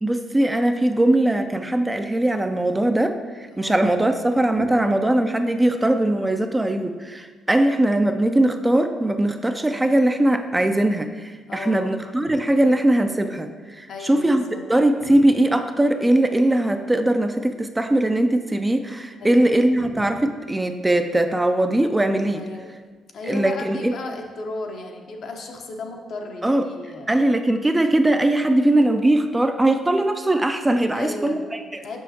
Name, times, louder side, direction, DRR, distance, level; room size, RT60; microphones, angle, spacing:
voice 1, 0.0-14.4 14.7-22.4 23.3-23.9 26.4-26.7 27.1-31.8, right 1 dB, 15° right, 7 dB, 0.4 m, -20 dB
voice 2, 3.5-3.9 4.6-4.8 11.5-12.0 12.3-12.8 13.9-14.6 15.0-15.3 19.2-19.5 19.8-20.2 22.4-22.7 23.1-27.1 30.9-31.4 31.8-32.0, left 3 dB, 60° left, 2 dB, 0.8 m, -35 dB
6.2 x 5.5 x 2.8 m, 1.4 s
cardioid pair, 90°, 0 cm